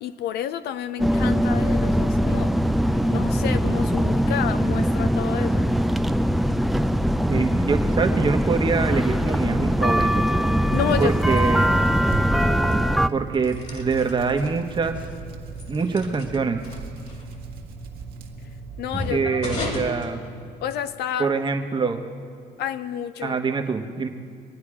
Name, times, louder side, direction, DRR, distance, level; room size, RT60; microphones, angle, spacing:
voice 1, 0.0-2.5 3.1-5.7 10.7-11.2 18.8-19.4 19.8-19.9 20.6-21.3 22.6-23.4, left 10 dB, 70° left, 0.7 m, -30 dB
sound 1, 1.0-13.1, equal, ahead, 0.4 m, -21 dB
voice 2, 7.3-10.2 11.0-11.7 13.1-15.0 15.7-16.6 19.1-20.2 21.2-22.0 23.2-24.1, right 4 dB, 30° right, 1.1 m, -24 dB
sound 2, 10.5-21.0, equal, 45° left, 2.4 m, -36 dB
Hands, 10.7-19.1, right 7 dB, 65° right, 1.6 m, -40 dB
24.0 x 9.5 x 4.9 m
cardioid pair, 110°, 17 cm